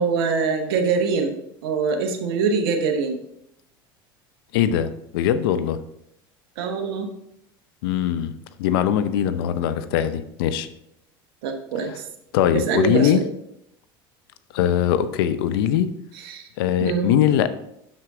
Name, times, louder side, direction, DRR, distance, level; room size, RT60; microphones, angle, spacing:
voice 1, 0.0-3.2 6.6-7.1 11.4-12.0 12.5-13.2 16.1-16.5 16.8-17.1, right 5 dB, 80° right, 4 dB, 1.1 m, -24 dB
voice 2, 4.5-5.8 7.8-8.3 8.6-10.7 12.3-13.2 14.5-15.9 16.6-17.5, left 10 dB, 80° left, 13 dB, 0.6 m, -21 dB
7.9 x 6.1 x 3.8 m, 0.79 s
supercardioid pair, 95°, 12 cm